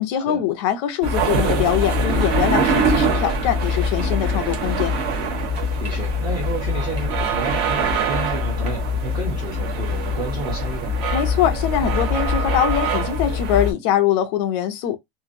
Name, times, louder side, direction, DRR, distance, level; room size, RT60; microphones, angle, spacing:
voice 1, 0.0-4.9 11.1-15.0, left 10 dB, 30° left, 0.4 m, -22 dB
sound 1, 1.0-13.7, equal, 40° right, 1.1 m, -22 dB
voice 2, 5.8-11.0, right 3 dB, 15° right, 0.6 m, -31 dB
2.8 x 2.5 x 2.5 m
supercardioid pair, 170°, 31 cm